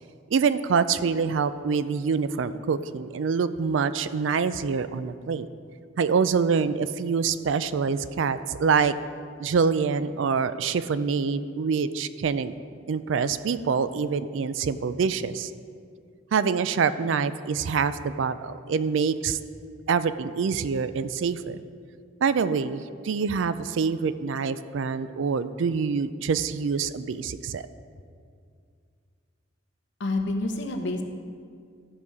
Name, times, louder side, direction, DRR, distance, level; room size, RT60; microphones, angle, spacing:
voice 1, 0.3-5.5 6.0-8.9 9.4-12.5 12.9-15.5 16.3-19.4 19.9-21.6 22.2-27.6, right 5 dB, 75° right, 14 dB, 0.4 m, -25 dB
voice 2, 30.0-31.0, left 2 dB, 65° left, 4 dB, 0.9 m, -28 dB
13.0 x 5.5 x 4.8 m, 2.2 s
head